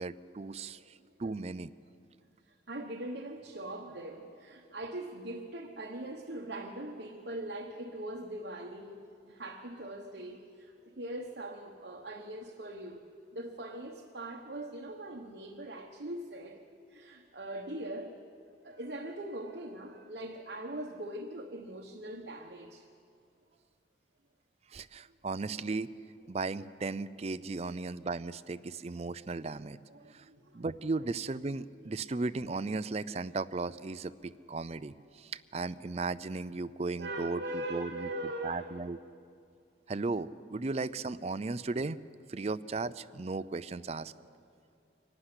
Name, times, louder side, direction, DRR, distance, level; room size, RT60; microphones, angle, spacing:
voice 1, 0.0-1.7 24.7-25.9 26.3-29.8 30.1-30.3 30.5-37.4 37.7-38.1 38.4-39.0 39.9-42.0 42.3-44.1, right 3 dB, 35° right, 14 dB, 0.5 m, -36 dB
voice 2, 2.7-13.0 13.3-18.2 18.6-22.8 27.6-27.7 29.9-30.7 36.9-38.7, right 1 dB, 65° right, 2 dB, 1.2 m, -41 dB
24.5 x 12.0 x 9.8 m, 2.4 s
head